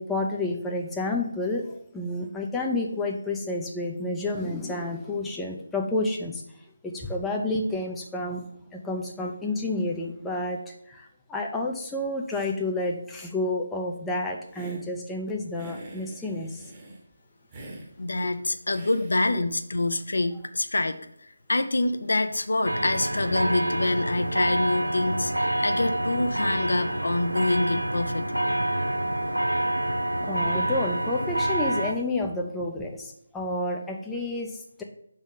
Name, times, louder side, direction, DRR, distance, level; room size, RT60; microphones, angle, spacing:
voice 1, 0.0-6.4 6.8-8.4 8.7-16.7 19.4-19.5 30.2-34.8, left 2 dB, 5° left, -1 dB, 0.5 m, -30 dB
Hiss, 14.5-14.9 15.5-17.0 17.5-17.9 18.7-19.4, right 1 dB, 20° right, 1.1 m, -44 dB
voice 2, 18.0-21.0 21.5-28.3, left 2 dB, 65° left, 9 dB, 0.6 m, -26 dB
sound 1, 22.6-31.9, right 1 dB, 85° right, 0.8 m, -27 dB
6.1 x 3.8 x 5.5 m, 0.72 s
figure-of-eight pair, 155°, 0 cm